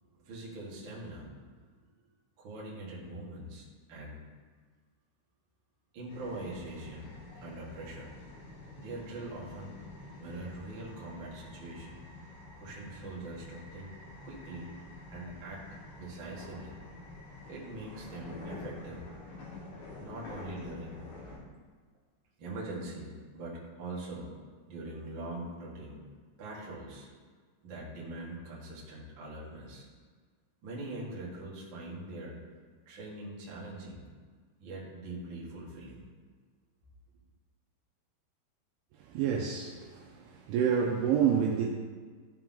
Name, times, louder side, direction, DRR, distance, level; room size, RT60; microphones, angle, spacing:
voice 1, 0.0-1.4 2.4-4.2 5.9-8.1 8.8-9.8 10.2-12.0 12.6-14.0 14.2-14.7 15.1-15.6 16.0-16.7 17.5-19.1 20.0-21.0 22.4-24.3 24.7-26.1 26.4-27.1 27.6-29.9 30.6-32.4 32.8-34.1 34.6-36.0, right 2 dB, 65° right, -5 dB, 1.2 m, -42 dB
sound 1, 6.1-21.4, left 2 dB, 70° left, 3.6 m, -48 dB
voice 2, 38.9-41.7, right 7 dB, 90° right, -1 dB, 2.3 m, -28 dB
13.5 x 4.6 x 3.8 m, 1.5 s
omnidirectional pair, 5.3 m